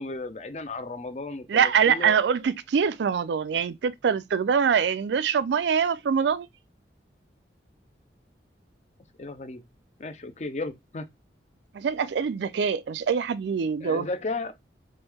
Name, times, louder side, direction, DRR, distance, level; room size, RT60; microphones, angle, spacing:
voice 1, 0.0-2.1 9.2-9.6 10.0-11.1 13.8-14.5, left 3 dB, 40° left, 0.5 m, -34 dB
voice 2, 1.5-6.5 11.7-14.1, right 6 dB, 80° right, 0.3 m, -24 dB
3.2 x 3.0 x 3.4 m
head